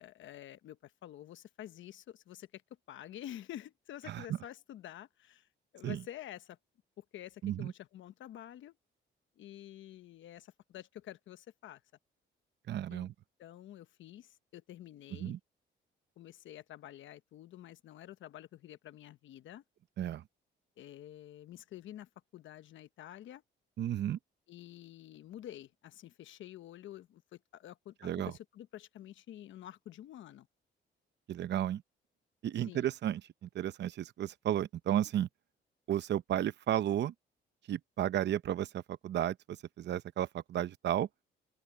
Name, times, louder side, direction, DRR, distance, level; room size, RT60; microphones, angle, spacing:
voice 1, 0.0-2.6 2.9-5.5 5.7-6.6 7.0-8.7 9.4-11.8 12.9-13.1 13.4-15.4 16.2-19.6 20.8-23.4 24.5-30.5 32.6-32.9, left 12 dB, 75° left, 1.1 m, -49 dB
voice 2, 12.7-13.1 15.2-15.4 20.0-20.2 23.8-24.2 28.0-28.3 31.3-31.8 32.4-35.3 35.9-37.1 37.7-41.1, right 11 dB, 60° right, 0.7 m, -33 dB
open air
cardioid pair, 90°, 20 cm